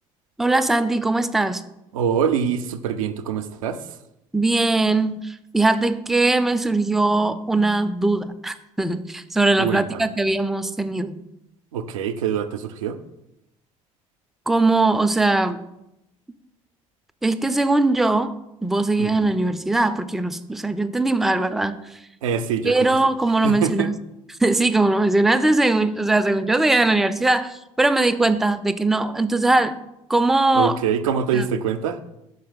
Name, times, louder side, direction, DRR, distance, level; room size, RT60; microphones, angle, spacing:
voice 1, 0.4-1.6 4.3-11.2 14.5-15.6 17.2-18.3 18.6-21.7 22.6-23.9 24.4-29.7 30.1-30.8 31.3-31.4, right 2 dB, ahead, 10 dB, 0.4 m, -20 dB
voice 2, 1.9-3.8 9.6-10.1 11.7-13.0 19.0-19.4 22.2-22.9 23.4-23.9 30.5-32.0, right 7 dB, 80° right, 8 dB, 0.4 m, -24 dB
5.5 x 4.0 x 5.1 m, 0.88 s
hypercardioid pair, 55°, 17 cm